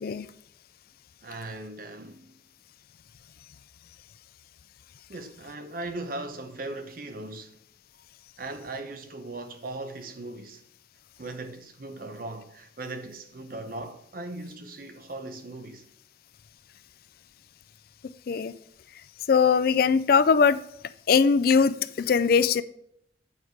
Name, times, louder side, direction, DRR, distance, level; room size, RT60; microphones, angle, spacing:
voice 1, 1.2-2.3 5.1-7.6 8.4-10.6 11.2-15.9, right 2 dB, 50° right, 0.9 m, -38 dB
voice 2, 19.3-20.6 21.1-22.6, left 5 dB, 55° left, 0.4 m, -21 dB
8.5 x 4.6 x 5.0 m
head